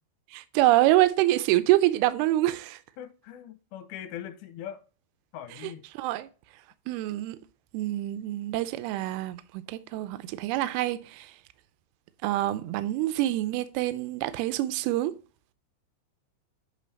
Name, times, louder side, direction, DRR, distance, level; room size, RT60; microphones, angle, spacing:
voice 1, 0.3-2.8 5.9-6.3 6.9-7.4 7.7-11.3 12.2-15.1, right 15 dB, 80° right, 2.4 m, -26 dB
voice 2, 3.0-4.8 5.3-5.8, left 10 dB, 75° left, 2.4 m, -41 dB
8.4 x 3.9 x 4.2 m
omnidirectional pair, 4.8 m